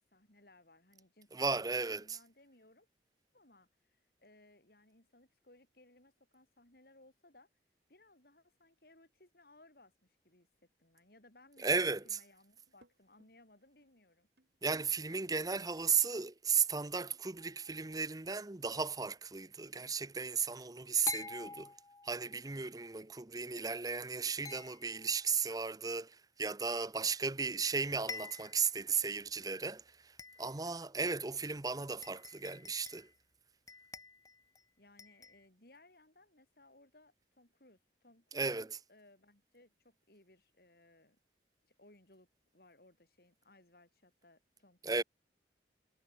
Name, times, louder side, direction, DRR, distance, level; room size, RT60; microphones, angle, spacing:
voice 1, 0.0-1.6 1.9-2.9 3.3-7.5 7.9-10.5 10.8-11.7 12.0-14.3 34.8-41.2 41.6-42.3 42.5-45.0, left 2 dB, 55° left, 4.7 m, -64 dB
voice 2, 1.3-2.2 11.6-12.2 14.6-21.7 22.0-33.1 38.3-38.8 44.8-45.0, right 5 dB, 20° right, 0.8 m, -35 dB
sound 1, 12.5-13.3 13.8-13.9 14.2-15.3 15.7-15.8 16.2-17.3, right 1 dB, 70° right, 3.7 m, -66 dB
sound 2, 17.4-17.9 21.1-22.4 24.4-25.2 27.3-27.4 27.7-27.8 28.1-28.7 29.2-29.3 30.2-30.7 31.6-31.7 32.0-33.2 33.7-34.6 35.0-35.5, left 5 dB, 20° left, 0.6 m, -46 dB
head